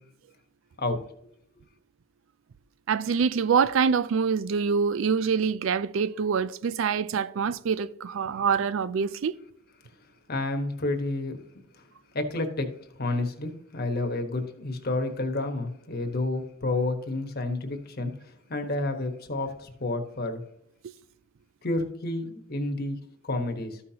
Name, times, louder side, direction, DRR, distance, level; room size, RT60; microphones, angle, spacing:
voice 1, 2.9-9.3, right 6 dB, 65° right, 0.4 m, -25 dB
voice 2, 10.3-11.4 11.8-11.9 12.1-12.7 13.0-20.4 21.6-23.0 23.2-23.8, left 2 dB, 50° left, 1.2 m, -30 dB
13.5 x 5.7 x 2.8 m
head